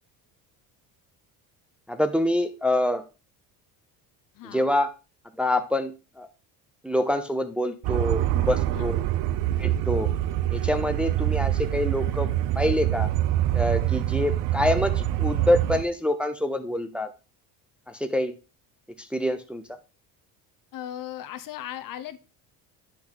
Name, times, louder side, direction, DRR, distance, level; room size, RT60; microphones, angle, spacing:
voice 1, 1.9-3.0 4.4-4.9 5.4-6.3 6.8-9.0 9.6-10.1 10.5-13.1 13.5-17.1 17.9-18.4 19.0-19.8, left 1 dB, 5° right, 7 dB, 0.7 m, -26 dB
voice 2, 4.4-4.7 8.7-9.0 20.7-22.2, left 11 dB, 55° left, 12 dB, 0.8 m, -37 dB
sound 1, 7.8-15.8, right 13 dB, 75° right, 0.7 m, -25 dB
8.5 x 5.8 x 3.9 m, 0.31 s
cardioid pair, 115°, 41 cm